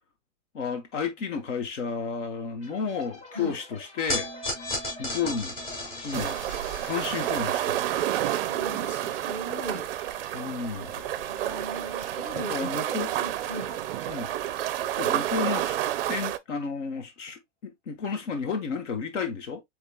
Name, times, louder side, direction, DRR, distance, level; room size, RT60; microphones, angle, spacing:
voice 1, 0.5-4.3 5.0-5.5 6.0-6.4 6.8-7.9 10.3-10.9 12.3-13.1 14.1-14.3 14.9-15.8 16.1-19.6, left 5 dB, 70° left, 1.5 m, -32 dB
sound 1, 2.6-16.2, left 2 dB, 50° left, 3.2 m, -50 dB
sound 2, 4.1-10.5, left 1 dB, 25° left, 2.5 m, -37 dB
sound 3, 6.1-16.4, right 13 dB, 50° right, 0.4 m, -30 dB
voice 2, 8.5-9.9 11.3-13.7, equal, 5° left, 0.5 m, -39 dB
6.6 x 3.6 x 2.2 m
supercardioid pair, 180°, 38 cm